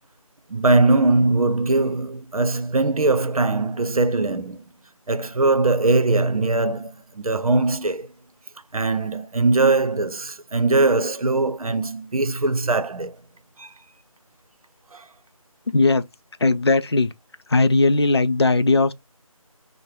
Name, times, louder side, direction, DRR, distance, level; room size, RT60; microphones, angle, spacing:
voice 1, 0.5-4.6 5.1-8.1 8.7-13.2 13.6-13.7 14.9-15.1, right 3 dB, 80° right, 0.7 m, -21 dB
voice 2, 15.7-16.0 16.4-17.1 17.5-18.9, left 3 dB, 45° left, 0.4 m, -18 dB
5.1 x 2.1 x 2.9 m
figure-of-eight pair, 170°, 18 cm